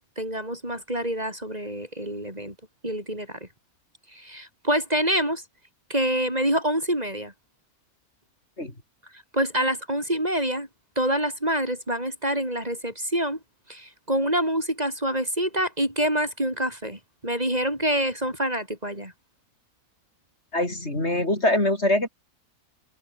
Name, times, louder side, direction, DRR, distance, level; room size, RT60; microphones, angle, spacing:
voice 1, 0.0-2.5 2.8-3.4 4.1-5.4 5.9-7.3 9.3-10.7 11.0-13.4 13.7-19.1, right 1 dB, 25° right, 6.4 m, -26 dB
voice 2, 20.5-22.1, left 1 dB, 45° left, 6.0 m, -23 dB
omnidirectional pair, 1.6 m